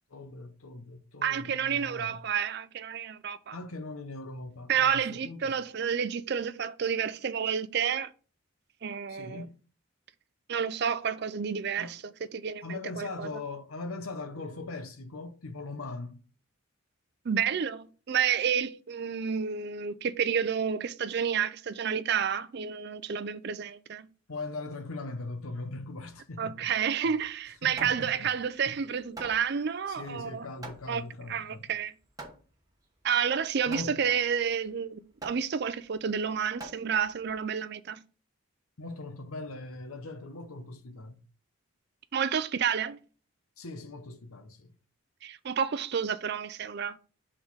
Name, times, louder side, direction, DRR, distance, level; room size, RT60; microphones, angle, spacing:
voice 1, 0.1-2.2 3.5-5.6 9.1-9.5 11.8-12.0 12.6-16.2 24.3-26.7 27.0-27.1 27.6-28.3 28.7-28.8 29.9-31.7 33.7-34.0 38.8-41.2 43.6-44.7, left 3 dB, 85° left, 1.0 m, -40 dB
voice 2, 1.2-3.6 4.7-8.1 8.8-9.5 10.5-13.3 17.2-24.1 26.4-30.5 30.9-31.0 31.3-31.9 33.0-38.0 42.1-43.0 45.2-47.0, right 7 dB, 50° right, 0.4 m, -30 dB
Hammer, 27.2-37.4, right 2 dB, 15° right, 1.0 m, -48 dB
6.2 x 3.8 x 4.7 m
head